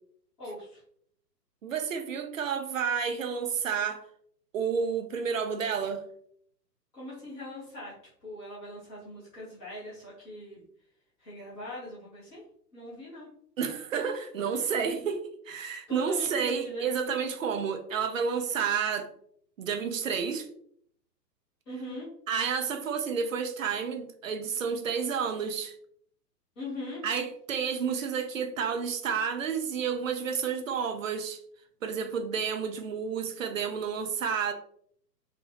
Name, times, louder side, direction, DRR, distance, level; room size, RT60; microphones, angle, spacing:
voice 1, 0.4-0.8 6.9-7.9 8.2-10.6 11.2-12.4 12.7-13.3 14.9-15.1 15.9-16.9 21.7-22.1 26.6-27.0, left 1 dB, 15° left, -9 dB, 0.8 m, -41 dB
voice 2, 1.6-4.0 4.5-6.0 13.6-19.1 19.6-20.5 22.3-25.7 27.0-31.4 31.8-34.5, right 6 dB, 55° right, 6 dB, 0.5 m, -30 dB
2.8 x 2.2 x 3.2 m, 0.67 s
figure-of-eight pair, 120°, 50 cm